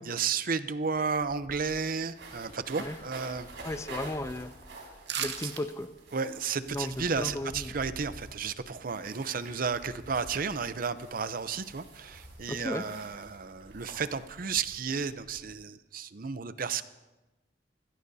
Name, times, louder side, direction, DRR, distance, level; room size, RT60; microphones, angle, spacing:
voice 1, 0.1-3.5 6.1-16.8, right 5 dB, 50° right, 13 dB, 0.6 m, -33 dB
sound 1, 0.6-0.7 0.9-15.4, right 2 dB, 90° right, 5.1 m, -48 dB
voice 2, 3.6-4.5 5.2-5.9 6.7-7.7 12.5-12.8, left 1 dB, 15° left, 11 dB, 0.5 m, -35 dB
sound 2, 5.1-5.6 6.0-6.1, right 8 dB, 70° right, 1.1 m, -34 dB
25.5 x 16.5 x 2.8 m, 1.1 s
head